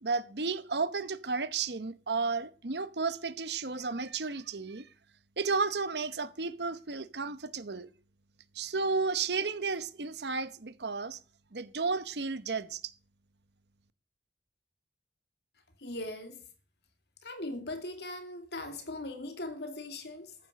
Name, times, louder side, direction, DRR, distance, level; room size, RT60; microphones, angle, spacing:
voice 1, 0.0-4.9 5.4-7.9 8.5-11.2 11.5-12.9, right 4 dB, 65° right, 1.0 m, -33 dB
voice 2, 15.8-16.4 17.2-20.4, left 2 dB, 65° left, 2.6 m, -39 dB
14.5 x 9.0 x 6.4 m
head